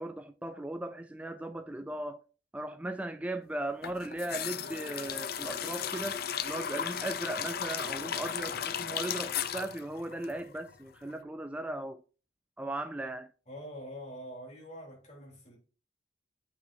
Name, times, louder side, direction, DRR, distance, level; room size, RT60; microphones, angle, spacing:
voice 1, 0.0-2.2 2.5-12.0 12.6-13.3, right 1 dB, 5° right, 0.3 m, -37 dB
sound 1, 3.8-10.8 11.1-11.2, left 8 dB, 55° left, 0.5 m, -36 dB
voice 2, 13.5-15.6, equal, 35° left, 3.2 m, -45 dB
8.6 x 6.1 x 2.7 m
head